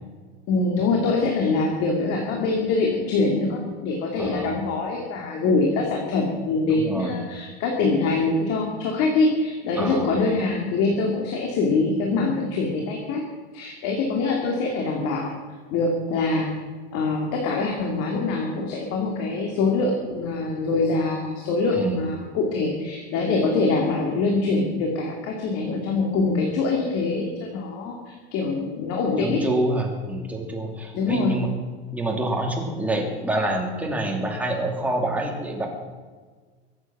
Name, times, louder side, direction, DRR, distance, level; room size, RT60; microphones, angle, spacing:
voice 1, 0.5-13.2 13.5-15.3 15.7-16.5 16.9-29.4 30.9-31.3, left 3 dB, 45° left, 0 dB, 2.9 m, -24 dB
voice 2, 4.2-4.6 6.6-7.2 9.8-10.1 21.7-22.0 29.2-31.5 31.9-35.7, right 1 dB, 5° right, 0 dB, 2.8 m, -27 dB
23.0 x 8.8 x 6.1 m, 1.5 s
supercardioid pair, 145°, 33 cm